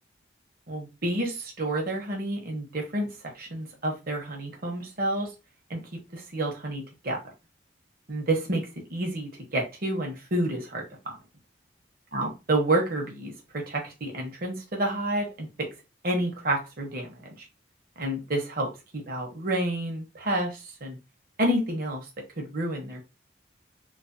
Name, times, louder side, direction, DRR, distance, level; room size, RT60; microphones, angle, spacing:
voice 1, 0.7-3.1 3.3-5.3 5.7-5.8 6.1-7.2 8.1-10.8 12.1-15.7 16.0-17.4 18.0-18.7 18.9-21.0 21.4-22.0 22.4-23.0, right 1 dB, 45° right, 1 dB, 0.9 m, -29 dB
3.1 x 2.1 x 2.6 m, 0.27 s
head